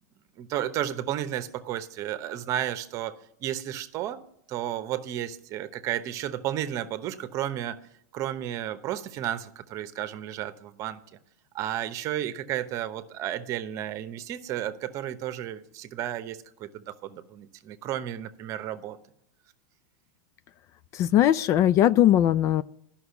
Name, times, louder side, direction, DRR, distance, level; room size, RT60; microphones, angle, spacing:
voice 1, 0.4-4.2 4.5-7.8 8.1-11.0 11.5-19.0, right 11 dB, 35° right, 0.9 m, -33 dB
voice 2, 20.9-22.6, left 12 dB, 35° left, 0.3 m, -20 dB
11.5 x 6.0 x 8.2 m
hypercardioid pair, 130°, 9 cm